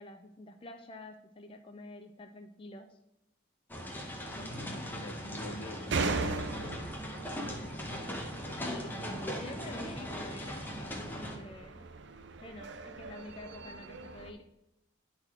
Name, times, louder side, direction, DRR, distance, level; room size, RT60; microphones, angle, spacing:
voice 1, 0.0-3.0 8.6-11.8 12.4-14.5, left 2 dB, 25° left, 5 dB, 0.4 m, -48 dB
sound 1, 3.7-11.4, equal, 10° left, 1.0 m, -39 dB
voice 2, 4.3-7.0 7.4-8.0, left 1 dB, 70° left, 7 dB, 0.9 m, -46 dB
sound 2, 5.9-14.3, right 3 dB, 60° right, 0.5 m, -39 dB
10.0 x 3.9 x 4.4 m, 0.87 s
head